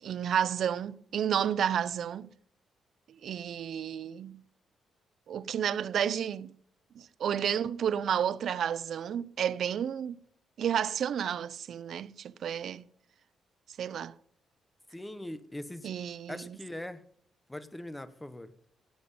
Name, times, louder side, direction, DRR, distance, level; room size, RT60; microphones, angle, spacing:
voice 1, 0.0-2.3 3.2-4.4 5.3-6.5 6.9-10.2 10.6-12.9 13.8-14.1 15.8-16.6, right 9 dB, 60° right, 0.5 m, -31 dB
voice 2, 14.9-15.9 16.3-17.0 17.5-18.5, left 1 dB, 10° left, 1.0 m, -41 dB
16.5 x 7.8 x 5.5 m
cardioid pair, 145°, 0 cm